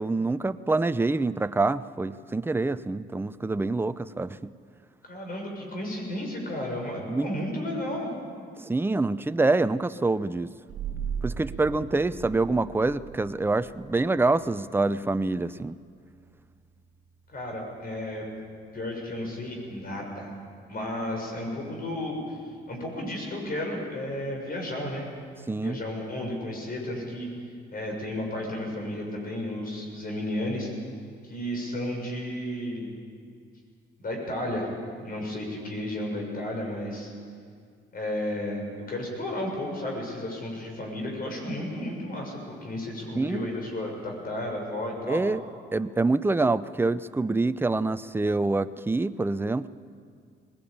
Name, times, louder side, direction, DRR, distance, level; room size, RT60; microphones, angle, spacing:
voice 1, 0.0-4.5 7.0-7.3 8.6-10.5 11.2-15.8 25.5-25.8 43.2-43.5 45.1-45.4 45.7-49.7, right 3 dB, 10° right, 13 dB, 0.6 m, -26 dB
voice 2, 5.0-8.1 17.3-18.3 18.7-20.3 20.7-22.4 22.7-25.1 25.6-27.3 27.7-30.7 31.2-32.9 34.0-34.7 35.0-37.1 37.9-45.2, left 1 dB, 45° left, 1 dB, 6.6 m, -33 dB
sound 1, 10.7-21.9, right 7 dB, 75° right, 1.5 m, -41 dB
20.0 x 17.5 x 8.7 m, 2.2 s
cardioid pair, 90°, 20 cm